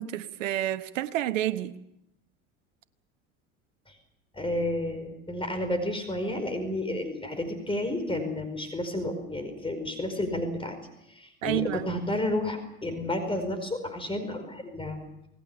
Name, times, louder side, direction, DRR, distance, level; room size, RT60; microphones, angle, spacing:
voice 1, 0.0-1.7 11.4-11.9, right 13 dB, 75° right, 1.2 m, -29 dB
voice 2, 4.3-10.8 11.1-15.0, left 1 dB, 15° left, 4.9 m, -31 dB
27.5 x 19.0 x 7.1 m
hypercardioid pair, 80°, 39 cm